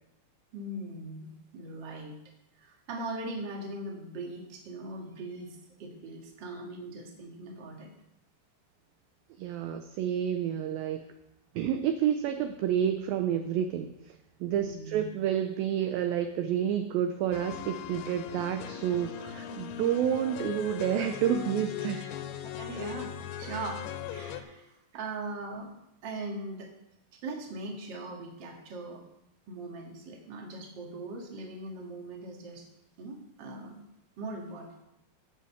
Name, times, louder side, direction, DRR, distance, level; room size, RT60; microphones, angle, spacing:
voice 1, 0.5-2.2 2.6-7.9 14.5-15.1 22.0-22.1 22.6-23.8 24.1-25.7 26.0-26.7 27.1-29.0 29.5-32.7 33.0-33.8 34.2-34.7, right 2 dB, 40° right, 0 dB, 1.8 m, -40 dB
voice 2, 9.4-11.1 11.6-22.1, right 9 dB, 80° right, 7 dB, 2.1 m, -29 dB
sound 1, 17.3-24.4, left 10 dB, 80° left, 2.7 m, -39 dB
16.0 x 5.6 x 5.9 m, 0.86 s
omnidirectional pair, 4.7 m